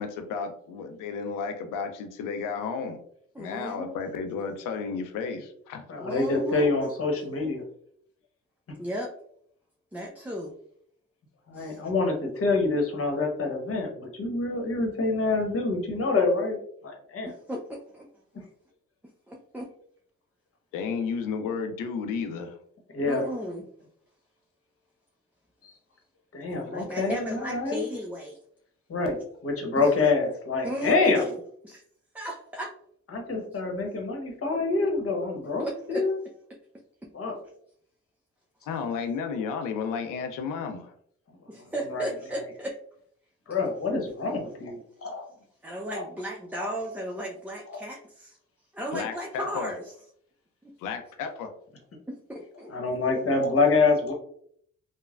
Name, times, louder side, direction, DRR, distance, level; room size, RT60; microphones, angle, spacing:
voice 1, 0.0-3.0 3.4-5.8 20.7-22.6 38.7-40.9 48.9-49.7 50.8-51.5, left 5 dB, 85° left, 6 dB, 0.5 m, -32 dB
voice 2, 3.3-4.0 6.0-6.8 8.8-9.1 9.9-10.5 11.5-11.9 17.5-18.0 19.3-19.7 23.0-23.6 26.5-28.4 29.8-30.1 30.6-31.3 31.6-31.8 32.1-32.7 35.6-36.0 41.5-42.8 45.6-48.4 48.7-49.9 50.6-50.7 52.1-53.0, equal, 5° right, 0 dB, 0.5 m, -35 dB
voice 3, 5.9-7.6 11.5-16.6 16.8-17.3 22.9-23.2 26.3-27.8 28.9-29.2 29.4-31.3 33.1-36.2 37.1-37.3 41.6-42.1 43.5-45.3 46.6-46.7 52.7-54.1, left 3 dB, 45° left, 1 dB, 1.0 m, -26 dB
3.1 x 2.1 x 2.4 m, 0.63 s
supercardioid pair, 50°, 31 cm